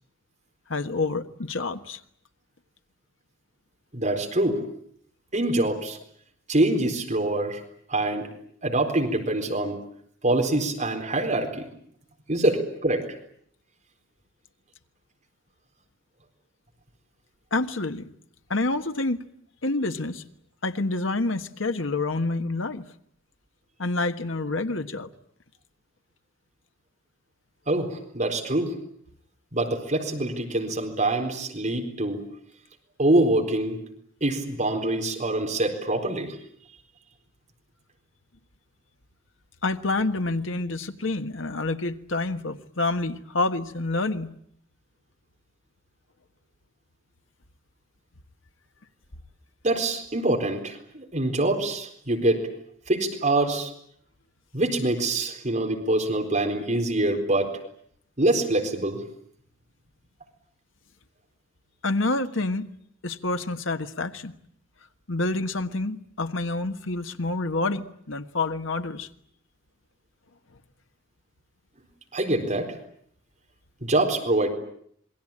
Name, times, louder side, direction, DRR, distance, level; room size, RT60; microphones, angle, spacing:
voice 1, 0.7-2.0 17.5-18.1 18.5-19.2 19.6-20.2 20.6-22.8 23.8-25.1 39.6-44.3 61.8-62.7 63.0-64.3 65.1-69.1, left 2 dB, 80° left, 1.5 m, -28 dB
voice 2, 3.9-4.6 5.3-6.0 6.5-7.6 7.9-8.3 8.6-9.8 10.2-11.7 12.3-13.0 27.7-28.7 29.5-32.2 33.0-33.8 34.2-36.4 49.6-52.4 52.9-53.7 54.5-57.5 58.2-59.0 72.1-72.7 73.8-74.5, right 2 dB, 40° right, 4.2 m, -25 dB
27.0 x 22.5 x 8.7 m
head